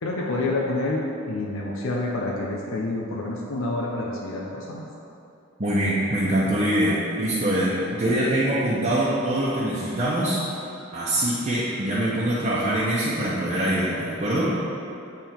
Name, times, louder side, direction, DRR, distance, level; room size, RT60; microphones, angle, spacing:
voice 1, 0.0-4.9, left 2 dB, 75° left, -2 dB, 0.6 m, -28 dB
voice 2, 5.6-10.4 10.9-14.5, right 1 dB, 35° right, -9 dB, 0.9 m, -24 dB
9.1 x 3.6 x 4.4 m, 2.7 s
head